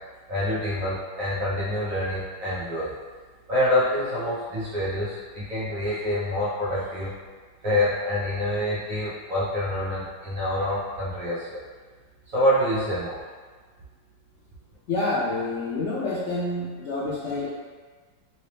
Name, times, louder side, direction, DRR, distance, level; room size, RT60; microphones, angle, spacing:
voice 1, 0.3-2.9 3.5-7.1 7.6-11.6 12.3-13.2, left 1 dB, 55° right, -9 dB, 1.1 m, -26 dB
voice 2, 14.9-17.5, left 2 dB, 85° left, -9 dB, 0.6 m, -28 dB
3.1 x 2.8 x 3.2 m, 1.5 s
omnidirectional pair, 2.1 m